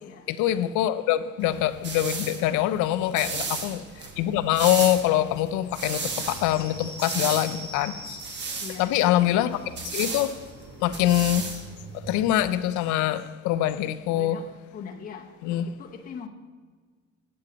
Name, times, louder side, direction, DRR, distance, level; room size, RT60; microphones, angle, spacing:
voice 1, 0.3-8.2 8.8-10.4 10.8-11.6 12.0-14.4 15.4-15.6, left 13 dB, 80° left, 0.6 m, -24 dB
sound 1, 1.4-12.4, right 4 dB, 40° right, 1.1 m, -35 dB
voice 2, 3.2-3.7 8.6-9.4 14.1-14.5 14.7-16.3, left 6 dB, 30° left, 0.8 m, -42 dB
sound 2, 6.0-13.1, right 1 dB, 85° right, 2.7 m, -46 dB
8.7 x 8.3 x 3.9 m
cardioid pair, 150°, 29 cm